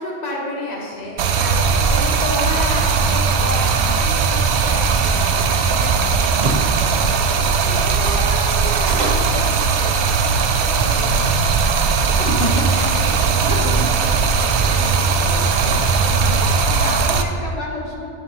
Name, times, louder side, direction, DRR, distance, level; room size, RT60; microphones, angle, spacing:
voice 1, 0.0-7.3 7.7-11.5, left 2 dB, 35° left, -3 dB, 1.3 m, -32 dB
sound 1, 0.8-9.4, right 2 dB, 40° right, 0.9 m, -32 dB
Stream, 1.2-17.2, right 5 dB, 70° right, 0.8 m, -18 dB
voice 2, 12.0-18.1, left 1 dB, 70° left, -3 dB, 1.3 m, -29 dB
11.5 x 5.5 x 2.8 m, 2.1 s
omnidirectional pair, 1.2 m